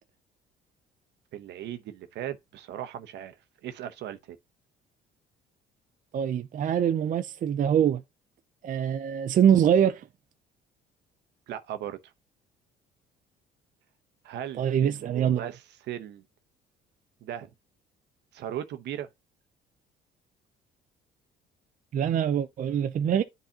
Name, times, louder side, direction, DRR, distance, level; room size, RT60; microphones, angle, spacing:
voice 1, 1.3-3.3 3.6-4.4 11.5-12.0 14.2-16.2 17.2-17.5 18.3-19.1, right 11 dB, 70° right, 0.8 m, -37 dB
voice 2, 6.1-8.0 8.6-10.0 14.6-15.4 21.9-23.2, right 9 dB, 45° right, 0.5 m, -24 dB
10.5 x 4.0 x 2.8 m
supercardioid pair, 80°, 18 cm